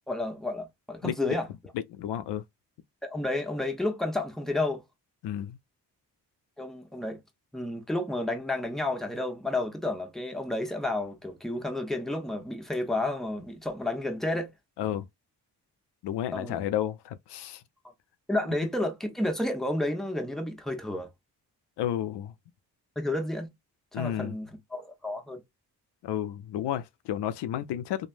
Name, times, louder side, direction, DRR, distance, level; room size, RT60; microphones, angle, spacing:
voice 1, 0.1-1.5 3.0-4.8 6.6-7.2 7.5-14.5 16.3-16.6 18.3-21.1 23.0-23.5 23.9-25.4, left 2 dB, ahead, 0.9 m, -31 dB
voice 2, 1.0-1.4 1.9-2.4 5.2-5.6 14.8-15.0 16.0-17.6 21.8-22.3 23.9-24.3 26.0-28.1, left 11 dB, 80° left, 0.5 m, -32 dB
3.2 x 2.1 x 2.5 m
cardioid pair, 55°, 41 cm